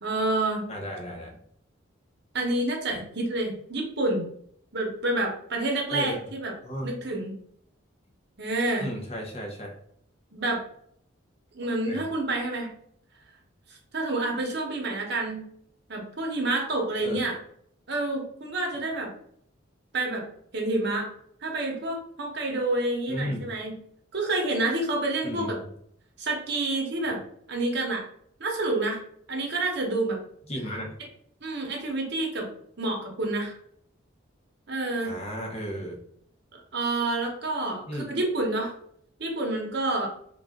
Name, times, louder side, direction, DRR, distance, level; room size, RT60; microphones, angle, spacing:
voice 1, 0.0-0.7 2.3-4.3 4.7-6.5 6.8-7.4 8.4-8.9 10.3-10.6 11.5-12.7 13.7-15.5 15.9-17.3 17.9-19.1 19.9-20.3 20.5-21.1 21.4-23.8 24.1-25.6 26.2-27.2 27.5-28.0 28.4-29.0 29.3-30.2 31.4-32.5 32.8-33.6 34.7-35.2 36.5-38.7 39.2-40.1, right 2 dB, 55° right, 0 dB, 0.8 m, -28 dB
voice 2, 0.7-1.4 5.9-6.2 6.6-6.9 8.8-9.8 11.8-12.1 17.0-17.3 23.1-23.5 25.2-25.5 30.5-31.0 35.0-36.0 37.9-38.1, equal, 30° left, 1 dB, 0.7 m, -34 dB
3.3 x 2.4 x 3.5 m, 0.67 s
head